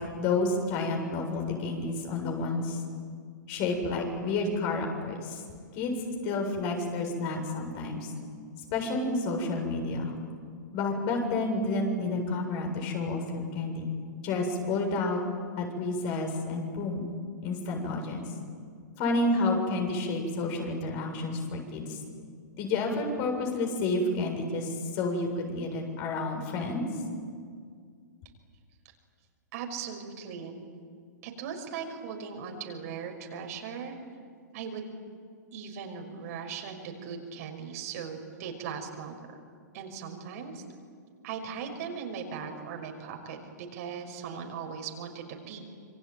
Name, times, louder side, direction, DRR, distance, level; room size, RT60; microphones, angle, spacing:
voice 1, 0.0-2.8 3.5-5.4 5.7-5.9 6.2-8.1 8.7-10.2 10.7-15.2 15.6-17.1 17.4-18.3 19.0-22.0 22.6-26.9, left 2 dB, 40° left, 2 dB, 7.4 m, -30 dB
voice 2, 29.5-30.7 31.2-34.0 34.5-34.9 35.5-39.2 39.7-40.6 41.2-45.6, right 6 dB, 55° right, 3 dB, 5.6 m, -39 dB
27.5 x 23.5 x 9.4 m, 2.1 s
hypercardioid pair, 125°, 10 cm